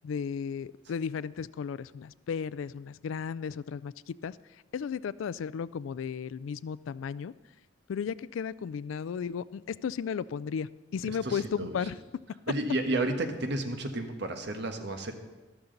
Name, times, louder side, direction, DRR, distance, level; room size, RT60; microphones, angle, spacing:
voice 1, 0.0-4.4 4.7-7.3 7.9-12.0, left 7 dB, 90° left, 20 dB, 0.3 m, -34 dB
voice 2, 11.2-11.8 12.5-15.1, right 2 dB, 60° right, 5 dB, 1.2 m, -31 dB
13.0 x 12.5 x 3.9 m, 1.2 s
head